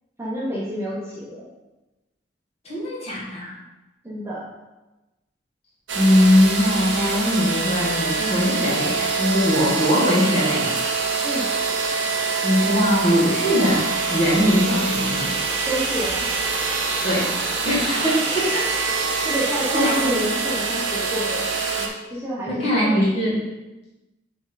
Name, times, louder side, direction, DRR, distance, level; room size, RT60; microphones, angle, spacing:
voice 1, 0.2-1.5 4.0-4.5 11.2-11.5 15.7-16.3 19.2-21.5 21.8-22.9, equal, 15° right, -6 dB, 1.2 m, -28 dB
voice 2, 2.6-3.5 5.9-10.8 12.4-15.4 17.0-17.4 17.6-18.7 19.7-20.1 22.5-23.4, equal, 35° left, -6 dB, 2.0 m, -21 dB
sound 1, 5.9-21.9, right 4 dB, 85° right, 0.9 m, -25 dB
7.0 x 3.9 x 4.1 m, 1.0 s
head